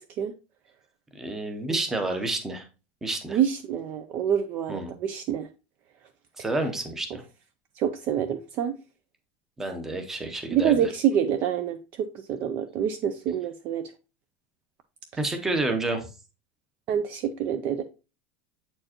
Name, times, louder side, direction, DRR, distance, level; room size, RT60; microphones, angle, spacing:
voice 1, 1.1-2.7 3.0-3.4 4.7-4.9 6.4-7.2 9.6-10.9 15.2-16.1, right 2 dB, 10° right, 0.8 m, -29 dB
voice 2, 3.3-5.5 7.8-8.8 10.5-13.8 16.9-17.8, right 9 dB, 35° right, 0.4 m, -26 dB
7.6 x 4.4 x 2.9 m
supercardioid pair, 175°, 5 cm